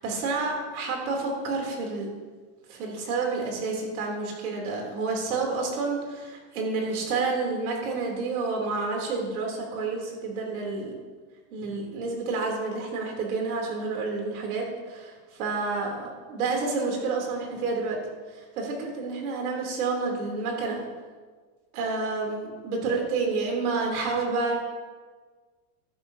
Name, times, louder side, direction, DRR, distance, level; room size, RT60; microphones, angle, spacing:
voice 1, 0.0-2.1 2.7-11.0 11.5-18.0 18.3-20.8 21.7-24.6, right 4 dB, 70° right, 0 dB, 3.4 m, -29 dB
13.0 x 10.5 x 2.8 m, 1.4 s
supercardioid pair, 170°, 45 cm